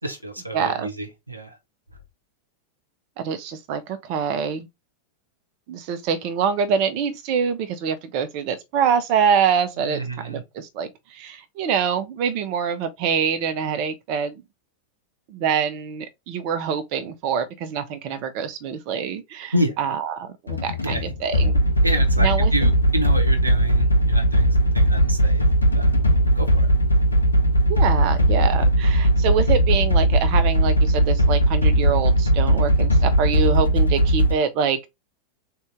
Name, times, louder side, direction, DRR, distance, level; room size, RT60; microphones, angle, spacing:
voice 1, 0.0-1.6 9.8-10.4 19.5-19.9 20.6-21.0 21.8-25.4 25.7-26.0 26.3-26.7, right 1 dB, 85° right, 0.8 m, -29 dB
voice 2, 0.5-0.9 3.2-4.7 5.7-14.4 15.3-21.6 22.2-22.7 27.7-34.8, right 7 dB, 45° right, 0.8 m, -25 dB
sound 1, 20.5-34.3, right 1 dB, 80° left, 0.6 m, -18 dB
3.8 x 2.7 x 3.5 m
figure-of-eight pair, 90°, 0 cm